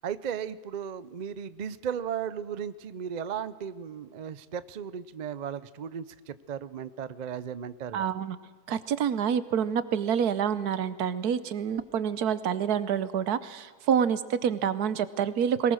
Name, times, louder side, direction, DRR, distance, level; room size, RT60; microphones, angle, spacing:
voice 1, 0.0-8.1, right 8 dB, 55° right, 15 dB, 0.5 m, -36 dB
voice 2, 7.9-8.4 8.7-15.7, right 8 dB, 80° right, 15 dB, 1.4 m, -27 dB
22.0 x 19.5 x 6.3 m, 1.4 s
omnidirectional pair, 1.6 m